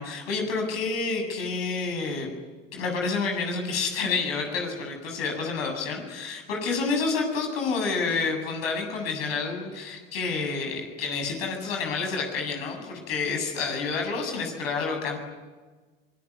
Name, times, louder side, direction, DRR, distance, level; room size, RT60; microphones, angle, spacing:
voice 1, 0.0-2.3 2.7-15.2, left 4 dB, 75° left, 3 dB, 7.8 m, -29 dB
25.0 x 22.5 x 9.6 m, 1.3 s
hypercardioid pair, 70°, 30 cm